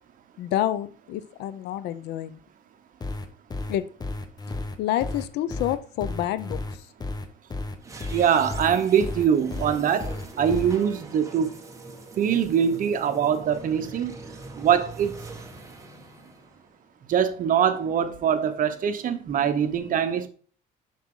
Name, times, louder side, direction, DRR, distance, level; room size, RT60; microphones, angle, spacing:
voice 1, 0.4-2.4 3.7-3.9 4.8-6.8, left 12 dB, 85° left, 0.7 m, -28 dB
sound 1, 3.0-10.8, left 2 dB, 25° left, 1.0 m, -33 dB
sound 2, 7.8-17.0, right 3 dB, 20° right, 1.7 m, -43 dB
voice 2, 8.1-11.5 12.2-14.1 14.6-15.2 17.1-20.3, right 8 dB, 55° right, 1.1 m, -23 dB
7.2 x 6.1 x 3.8 m
cardioid pair, 110°, 17 cm